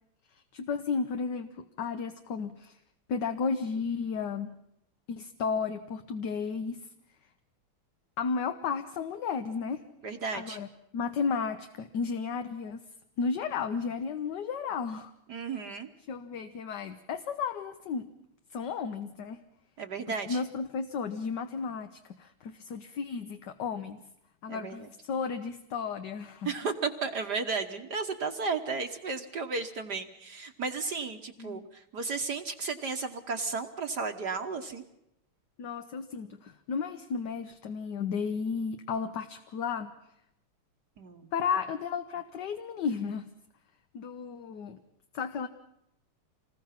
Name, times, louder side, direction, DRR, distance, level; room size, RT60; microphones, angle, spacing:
voice 1, 0.5-2.7 3.1-4.5 5.1-6.8 8.2-9.8 10.3-10.7 10.9-12.8 13.2-15.1 16.1-18.1 18.5-19.4 20.3-24.0 24.4-26.5 31.4-31.6 35.6-39.9 41.3-43.3 43.9-44.8 45.1-45.5, left 5 dB, 60° left, 8 dB, 1.5 m, -33 dB
voice 2, 10.0-10.6 15.3-15.9 19.8-20.4 24.5-24.9 26.5-34.8 41.0-41.3, right 4 dB, 55° right, 6 dB, 1.6 m, -34 dB
27.0 x 20.0 x 5.8 m, 0.81 s
omnidirectional pair, 2.4 m